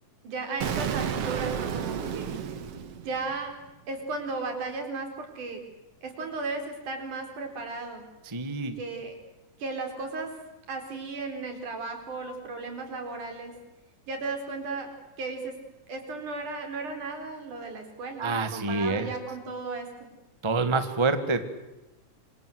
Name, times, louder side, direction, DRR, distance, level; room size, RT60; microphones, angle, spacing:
voice 1, 0.2-2.3 3.0-3.5 3.9-5.6 6.0-8.1 8.8-9.2 9.6-10.4 10.7-13.5 14.1-14.9 15.2-15.6 15.9-20.1, right 3 dB, 75° right, 5 dB, 5.8 m, -35 dB
Explosion, 0.6-3.5, right 8 dB, 55° right, 2.3 m, -31 dB
voice 2, 8.2-8.8 18.2-19.1 20.4-21.4, right 3 dB, 15° right, 10 dB, 1.1 m, -27 dB
27.0 x 25.5 x 8.0 m, 1.0 s
omnidirectional pair, 3.6 m